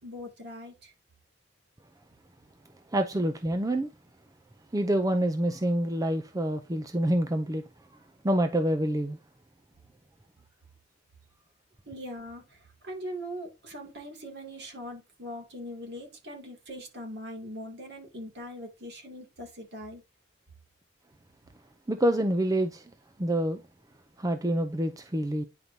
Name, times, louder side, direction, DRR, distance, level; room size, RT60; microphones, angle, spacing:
voice 1, 0.0-0.9 11.9-20.0, equal, 55° right, 2.6 m, -41 dB
voice 2, 2.9-3.9 4.7-7.6 8.2-9.2 21.9-22.9 23.2-23.6 24.2-25.4, right 1 dB, 15° right, 0.5 m, -27 dB
9.5 x 5.2 x 2.8 m
head